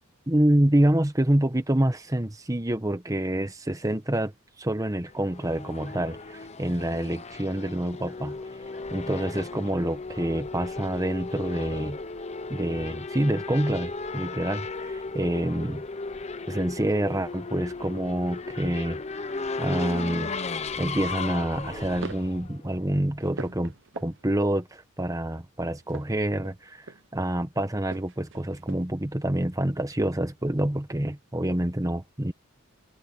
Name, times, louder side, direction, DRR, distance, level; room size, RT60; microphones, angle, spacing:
voice 1, 0.3-4.3 4.6-8.4 8.9-12.0 12.5-15.8 16.5-19.3 19.6-20.3 20.8-26.9 27.1-32.3, right 1 dB, 15° right, 1.2 m, -27 dB
Race car auto racing / Accelerating revving vroom, 5.0-23.2, left 3 dB, 30° left, 0.8 m, -36 dB
sound 1, 21.7-22.4 22.8-24.5 25.8-27.2 27.8-29.0, right 3 dB, 60° right, 1.0 m, -43 dB
head